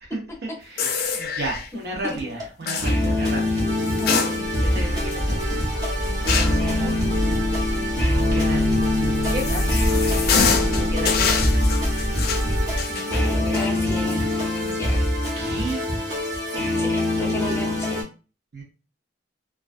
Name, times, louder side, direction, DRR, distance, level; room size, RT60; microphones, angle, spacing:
voice 1, 0.0-4.0 4.4-5.8 8.3-9.7 10.8-11.8 15.4-15.8 18.5-18.6, right 2 dB, 65° right, 0.6 m, -34 dB
sound 1, 0.8-1.7 2.7-3.0 3.9-4.7 5.1-5.2 6.3-6.7 8.8-14.9 15.2-15.3 16.3-16.6, left 6 dB, 55° left, 0.4 m, -26 dB
sound 2, 2.1-18.0, left 1 dB, 25° right, 0.8 m, -24 dB
sound 3, 4.6-12.9, equal, 85° right, 1.0 m, -27 dB
voice 2, 6.6-7.0 13.5-14.2 14.7-15.0 16.8-18.1, left 2 dB, 15° left, 0.6 m, -33 dB
2.3 x 2.2 x 2.4 m
head